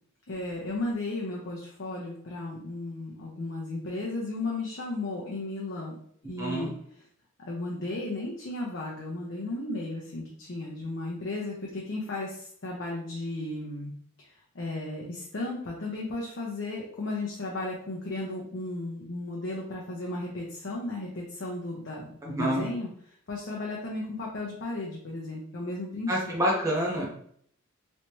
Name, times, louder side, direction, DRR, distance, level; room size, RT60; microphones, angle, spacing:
voice 1, 0.3-6.0 6.3-7.1 7.4-13.9 14.2-26.3, left 2 dB, 55° left, -3 dB, 0.6 m, -35 dB
voice 2, 6.4-6.7 22.3-22.7 26.1-27.1, equal, 15° right, -2 dB, 0.9 m, -27 dB
3.2 x 2.8 x 2.9 m, 0.64 s
head